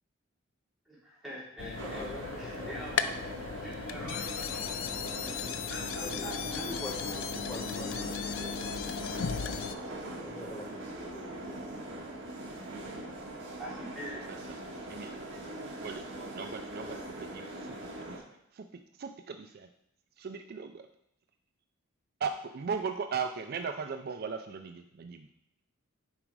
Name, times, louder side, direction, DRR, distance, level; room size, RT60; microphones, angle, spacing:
voice 1, 0.8-3.3 3.6-6.6 13.6-14.4, right 1 dB, ahead, -10 dB, 3.3 m, -45 dB
sound 1, 1.6-9.7, left 7 dB, 75° left, 0.5 m, -36 dB
sound 2, 1.7-18.2, right 1 dB, 65° right, 1.6 m, -41 dB
voice 2, 1.8-3.0 6.0-9.9 10.2-11.8, left 1 dB, 15° left, -1 dB, 0.6 m, -45 dB
voice 3, 16.3-17.0 17.3-17.7 18.1-18.2 19.0-19.7 20.2-20.8 22.2-25.3, right 5 dB, 50° right, 7 dB, 0.4 m, -37 dB
7.4 x 5.0 x 4.7 m, 0.78 s
head